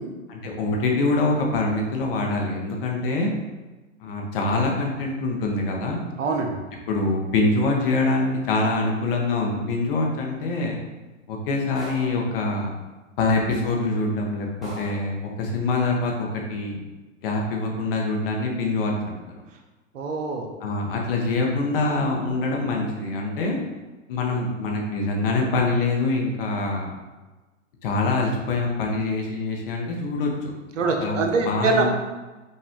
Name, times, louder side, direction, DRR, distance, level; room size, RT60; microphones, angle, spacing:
voice 1, 0.3-3.3 4.0-6.0 6.9-10.8 11.3-12.7 13.2-16.8 17.2-19.4 20.6-23.6 24.1-26.9 27.8-30.3 31.0-31.8, left 3 dB, 45° left, 0 dB, 1.0 m, -24 dB
voice 2, 6.2-6.6 19.9-20.5 30.8-31.8, right 4 dB, 70° right, 3 dB, 1.0 m, -24 dB
sound 1, 11.8-12.3 13.4-13.5 14.0-14.1 14.6-15.2, right 1 dB, ahead, 1.1 m, -39 dB
5.4 x 2.5 x 3.5 m, 1.2 s
hypercardioid pair, 140°, 39 cm